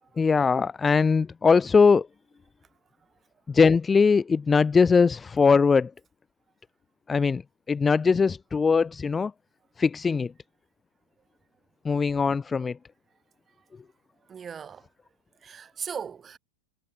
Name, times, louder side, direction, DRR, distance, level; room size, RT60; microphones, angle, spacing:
voice 1, 0.2-2.1 3.5-5.9 7.1-7.4 7.7-9.3 9.8-10.3 11.8-12.8, left 5 dB, 15° left, 1.0 m, -21 dB
voice 2, 14.3-14.9 15.4-16.4, right 7 dB, 20° right, 3.4 m, -38 dB
figure-of-eight pair, 90°, 0 cm